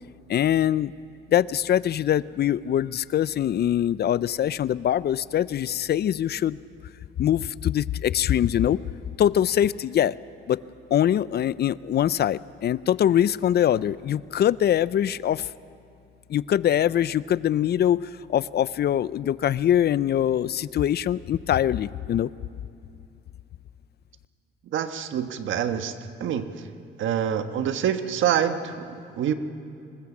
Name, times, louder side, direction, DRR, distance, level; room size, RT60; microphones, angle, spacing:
voice 1, 0.3-0.9 1.3-6.6 7.2-8.8 9.2-10.2 10.5-10.6 10.9-15.5 16.3-22.3, left 10 dB, 55° left, 19 dB, 0.5 m, -23 dB
voice 2, 24.7-25.9 26.2-26.5 27.0-29.3, right 9 dB, 75° right, 9 dB, 1.4 m, -26 dB
25.5 x 20.5 x 7.3 m, 2.6 s
cardioid pair, 90°, 20 cm